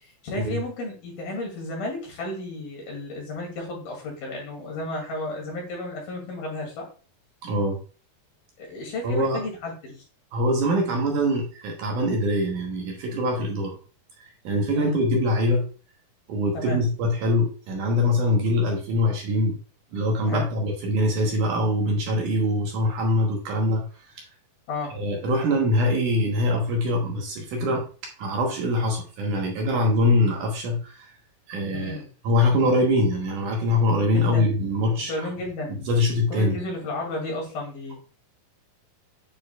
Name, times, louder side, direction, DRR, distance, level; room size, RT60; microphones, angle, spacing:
voice 1, 0.2-6.9 8.6-10.0 14.7-15.0 16.5-16.8 20.3-20.5 24.7-25.0 31.7-32.1 34.1-34.6 35.1-35.9 36.3-37.9, left 2 dB, 70° left, -1 dB, 4.0 m, -33 dB
voice 2, 7.4-7.8 9.0-9.4 10.3-13.8 14.4-15.7 16.3-19.6 19.9-23.8 24.1-24.2 24.9-27.8 28.2-31.1 31.5-35.3 35.9-36.6, left 1 dB, 65° right, 1 dB, 2.3 m, -23 dB
8.6 x 4.8 x 2.3 m, 0.37 s
omnidirectional pair, 4.4 m